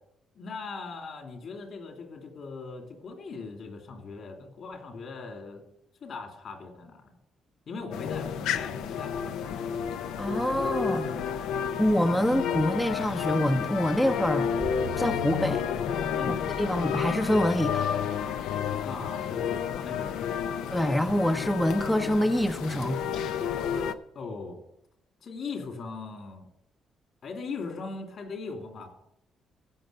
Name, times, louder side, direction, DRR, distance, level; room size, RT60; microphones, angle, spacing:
voice 1, 0.3-5.6 6.0-7.2 7.7-9.8 16.1-16.4 18.9-20.5 24.1-24.6 25.2-26.5 27.2-28.9, left 4 dB, 60° left, 2.8 m, -39 dB
sound 1, 7.9-23.9, left 8 dB, 90° left, 0.6 m, -31 dB
sound 2, 8.4-12.9 13.2-13.3 13.7-13.9 14.6-15.5, right 12 dB, 70° right, 0.4 m, -46 dB
voice 2, 10.2-11.1 11.8-14.5 15.0-15.6 16.6-17.8 20.7-23.0, equal, 5° left, 0.6 m, -26 dB
15.5 x 5.7 x 6.8 m
cardioid pair, 90°, 0 cm